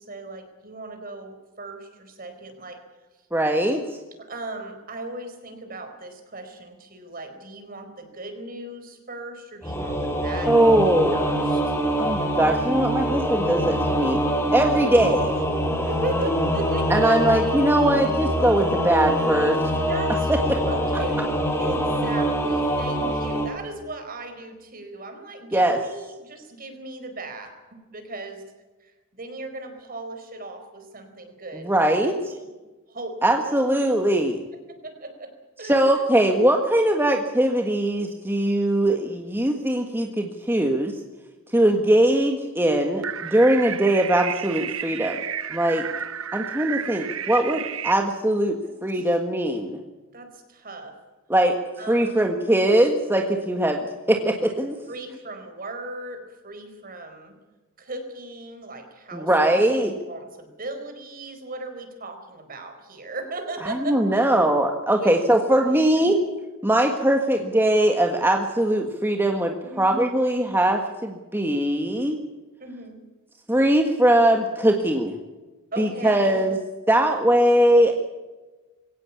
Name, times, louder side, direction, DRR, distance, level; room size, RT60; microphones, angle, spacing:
voice 1, 0.0-2.8 4.2-10.9 11.1-11.8 13.6-13.9 14.6-15.2 15.8-17.2 19.9-20.3 20.7-21.3 21.6-27.5 27.9-28.4 28.8-32.4 32.9-33.6 34.7-35.3 35.6-36.0 46.4-46.9 48.6-49.1 50.1-51.0 51.8-52.3 54.9-57.3 57.8-59.6 60.1-64.4 64.9-65.1 65.7-66.1 69.6-69.9 72.6-73.0 75.7-76.4, right 2 dB, 45° right, 6 dB, 4.4 m, -37 dB
voice 2, 3.3-3.8 10.5-11.2 12.0-14.2 14.5-15.3 16.9-19.6 20.3-20.6 25.5-25.8 31.6-32.2 33.2-34.4 35.6-40.9 41.5-45.2 45.5-45.9 46.3-49.8 51.3-51.6 51.9-53.8 54.1-54.8 59.1-59.9 63.8-66.2 66.6-72.2 73.5-75.1 75.8-76.6 76.9-77.9, right 1 dB, 10° right, 3 dB, 1.6 m, -21 dB
Singing / Musical instrument, 9.6-23.5, equal, 10° left, 3.4 m, -24 dB
sound 1, 43.0-47.9, right 9 dB, 75° right, 1.0 m, -32 dB
22.5 x 17.0 x 8.5 m, 1.2 s
head